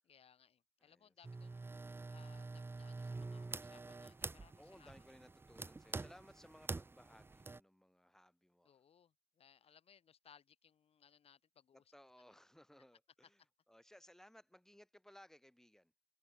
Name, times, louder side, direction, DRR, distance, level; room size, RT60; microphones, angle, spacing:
voice 1, 0.0-4.9 8.6-11.8, left 8 dB, 55° left, 3.1 m, -67 dB
voice 2, 0.8-1.1 4.6-8.8 11.7-15.9, equal, 5° left, 3.7 m, -62 dB
sound 1, 1.2-7.6, right 3 dB, 20° right, 0.8 m, -47 dB
cardioid pair, 95°, 12 cm